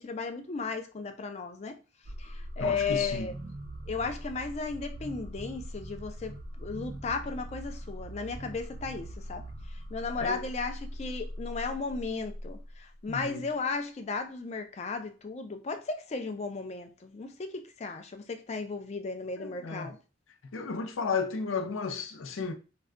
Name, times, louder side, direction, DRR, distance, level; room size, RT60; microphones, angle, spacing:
voice 1, 0.0-1.8 2.2-3.3 3.9-9.4 9.9-20.0, left 4 dB, 35° left, 0.3 m, -35 dB
sound 1, 2.0-12.9, equal, 45° right, 0.5 m, -41 dB
voice 2, 2.6-3.3 10.2-10.4 13.1-13.4 19.4-19.9 20.5-22.5, left 5 dB, 90° left, 0.5 m, -33 dB
2.3 x 2.2 x 3.6 m
head